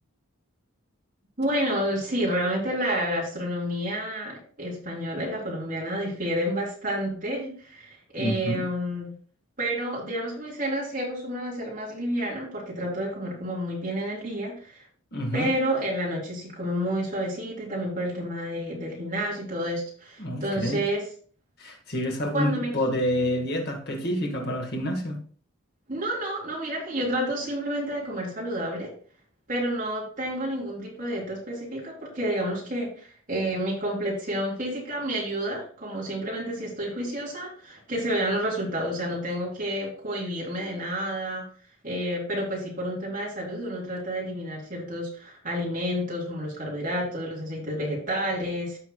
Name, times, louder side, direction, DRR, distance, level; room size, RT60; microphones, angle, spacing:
voice 1, 1.4-9.1 9.6-14.8 15.3-21.0 22.3-22.7 25.9-28.9 29.5-41.4 41.8-48.8, equal, 35° right, 3.7 m, -30 dB
voice 2, 8.2-8.6 15.1-15.5 20.2-20.8 21.6-25.2, equal, 50° left, 1.7 m, -28 dB
14.5 x 5.9 x 2.3 m
head